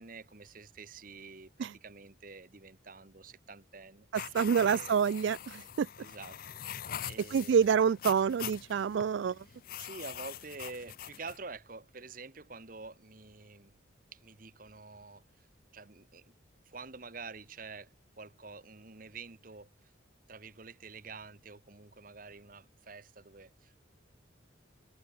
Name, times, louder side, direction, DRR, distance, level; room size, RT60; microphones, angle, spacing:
voice 1, 0.0-5.1 6.0-7.7 9.5-13.8 14.1-15.5 15.7-16.3 16.6-19.9 20.3-23.8, right 4 dB, 45° right, 1.4 m, -48 dB
sound 1, 4.1-11.4, left 10 dB, 45° left, 0.4 m, -44 dB
voice 2, 4.1-5.9 7.3-9.4, right 7 dB, 70° right, 0.3 m, -27 dB
head